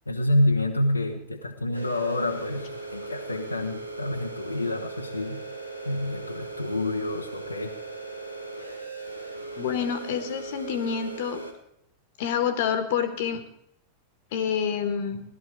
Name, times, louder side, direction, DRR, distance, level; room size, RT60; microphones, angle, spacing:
voice 1, 0.1-5.4 5.8-7.7, left 1 dB, 85° left, 1 dB, 1.2 m, -28 dB
sound 1, 1.7-11.5, right 3 dB, 90° right, 1.8 m, -38 dB
voice 2, 9.6-11.4 12.2-13.4 14.3-15.2, left 8 dB, 50° left, 10 dB, 1.6 m, -27 dB
17.0 x 12.0 x 4.9 m, 0.72 s
figure-of-eight pair, 90°, 0 cm